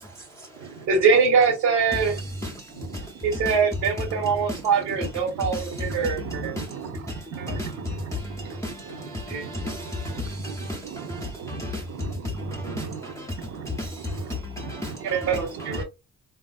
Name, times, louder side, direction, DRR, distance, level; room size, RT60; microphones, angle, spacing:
voice 1, 0.9-2.1 3.2-6.5 7.4-7.5 9.3-9.4 15.0-15.8, right 5 dB, 90° right, 1.2 m, -23 dB
voice 2, 6.2-7.0 7.3-8.6 9.4-9.8 10.5-10.6 10.8-13.1 13.5-13.7 14.0-15.0, right 6 dB, 55° right, 0.6 m, -37 dB
voice 3, 8.1-11.8 12.6-13.4 13.7-13.9 14.3-14.9, left 2 dB, 10° left, 0.5 m, -34 dB
3.3 x 2.4 x 2.3 m
cardioid pair, 90°, 30 cm